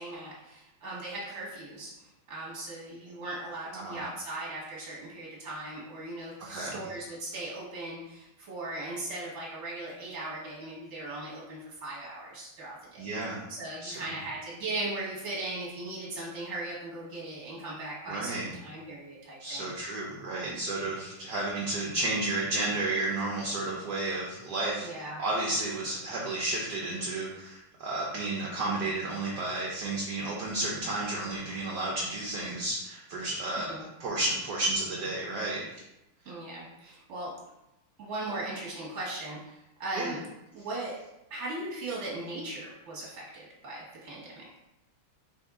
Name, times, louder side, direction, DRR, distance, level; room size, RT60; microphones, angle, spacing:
voice 1, 0.0-1.9 2.3-13.0 13.5-19.7 20.2-20.6 24.8-25.2 33.6-33.9 36.2-37.3 38.0-40.2 40.5-41.0 41.3-44.5, right 2 dB, 35° right, -5 dB, 1.4 m, -38 dB
voice 2, 3.7-4.0 6.5-6.8 13.0-13.5 13.8-14.0 18.1-18.5 19.4-33.7 34.0-35.6 39.9-40.1, right 2 dB, 65° right, -3 dB, 1.2 m, -32 dB
4.7 x 2.7 x 3.6 m, 0.91 s
omnidirectional pair, 2.3 m